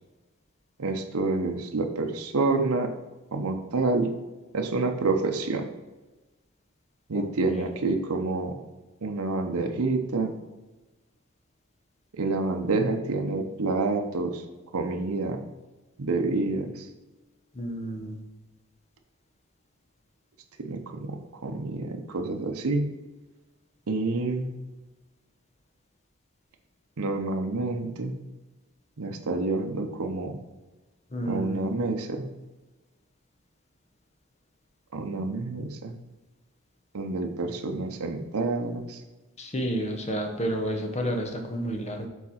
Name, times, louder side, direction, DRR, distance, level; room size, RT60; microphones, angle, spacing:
voice 1, 0.8-2.9 3.3-4.1 4.5-5.7 7.1-8.6 9.0-10.3 12.1-14.4 14.7-15.4 16.0-16.9 20.6-22.9 23.9-24.5 27.0-28.2 29.0-30.4 31.2-32.3 34.9-36.0 36.9-39.0, right 3 dB, 85° right, 4 dB, 0.7 m, -28 dB
voice 2, 17.5-18.2 31.1-31.6 39.4-42.1, equal, 30° left, 3 dB, 0.9 m, -30 dB
7.0 x 4.2 x 4.3 m, 1.1 s
head